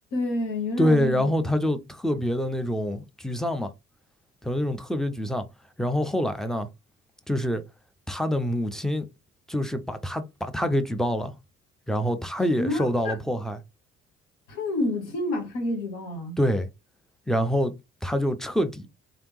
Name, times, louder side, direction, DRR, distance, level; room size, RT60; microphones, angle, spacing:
voice 1, 0.1-1.2 12.6-13.1 14.5-16.4, left 2 dB, 60° left, 1.4 m, -28 dB
voice 2, 0.8-3.7 4.4-5.4 5.8-6.7 7.3-7.6 8.1-9.1 9.5-11.3 11.9-13.6 16.4-16.7 17.3-17.7 18.0-18.9, equal, ahead, 0.5 m, -26 dB
3.3 x 2.7 x 3.0 m
figure-of-eight pair, 45°, 35 cm